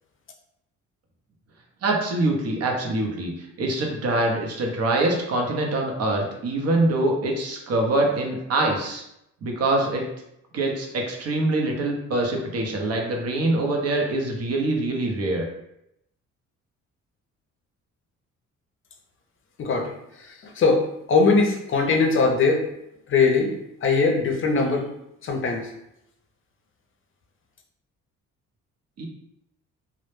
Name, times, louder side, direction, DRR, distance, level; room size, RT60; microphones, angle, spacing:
voice 1, 1.8-3.3 3.6-9.0 9.4-10.0 10.5-15.4 29.0-29.1, right 2 dB, 55° right, 1 dB, 0.6 m, -24 dB
voice 2, 19.6-19.9 20.2-22.7 23.1-23.5 23.8-24.9 25.2-25.7, left 4 dB, 45° left, 3 dB, 0.5 m, -21 dB
2.1 x 2.0 x 3.0 m, 0.81 s
cardioid pair, 90°, 30 cm